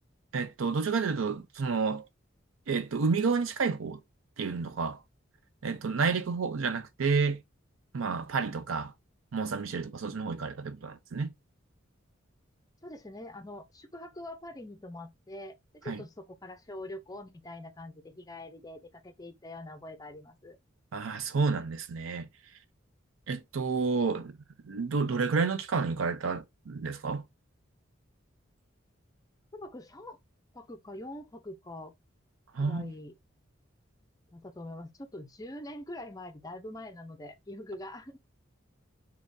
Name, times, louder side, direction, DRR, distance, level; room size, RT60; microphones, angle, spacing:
voice 1, 0.3-2.1 2.7-4.0 4.4-5.0 5.6-7.4 7.9-8.9 9.3-11.3 15.9-16.0 20.9-22.3 23.3-24.3 24.6-27.2 32.5-32.9, right 4 dB, 85° right, 0.5 m, -30 dB
voice 2, 12.8-20.6 29.5-30.2 30.5-31.9 32.6-33.1 34.3-38.2, left 1 dB, 20° left, 0.5 m, -44 dB
3.5 x 2.9 x 2.6 m
head